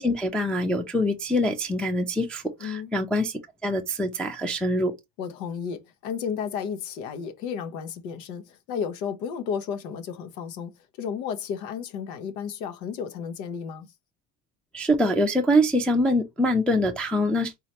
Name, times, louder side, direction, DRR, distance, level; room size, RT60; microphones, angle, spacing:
voice 1, 0.0-4.9 14.7-17.5, equal, ahead, 0.4 m, -24 dB
voice 2, 2.6-2.9 5.2-13.9, left 7 dB, 90° left, 1.0 m, -33 dB
4.0 x 3.1 x 2.9 m
supercardioid pair, 105°, 49 cm